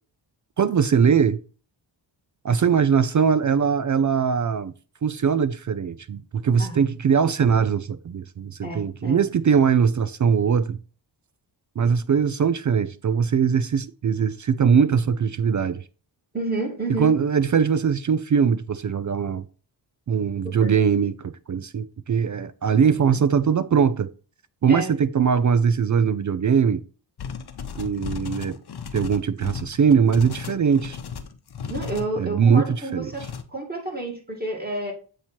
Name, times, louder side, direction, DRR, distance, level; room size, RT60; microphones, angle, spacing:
voice 1, 0.6-1.4 2.4-4.7 5.0-10.8 11.8-15.8 17.0-19.4 20.1-24.1 24.6-26.8 27.7-28.6 28.9-31.0 32.2-33.1, right 6 dB, 40° right, 0.4 m, -21 dB
voice 2, 8.6-9.2 16.3-17.1 20.4-20.7 23.1-23.2 24.7-24.9 31.7-33.2 33.5-34.9, right 2 dB, 20° right, 2.3 m, -30 dB
sound 1, 27.2-32.1 33.1-33.4, left 6 dB, 55° left, 0.9 m, -34 dB
8.2 x 3.0 x 4.4 m
cardioid pair, 60°, 48 cm